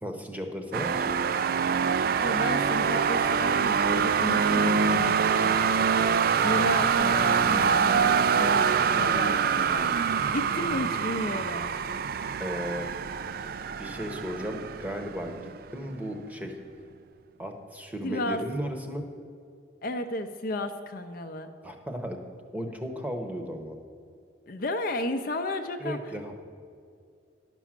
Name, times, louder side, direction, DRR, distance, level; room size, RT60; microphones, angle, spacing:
voice 1, 0.0-1.2 12.4-12.9 13.8-15.4 15.7-16.5 17.4-19.0 21.6-22.2 22.5-23.8 25.8-26.3, equal, 10° right, 4 dB, 0.9 m, -35 dB
sound 1, 0.7-15.6, right 6 dB, 50° right, 0.3 m, -25 dB
voice 2, 2.2-6.1 6.4-11.7 18.0-18.4 19.8-21.5 24.5-26.0, left 1 dB, 50° left, 7 dB, 0.5 m, -33 dB
11.0 x 6.1 x 7.4 m, 2.3 s
head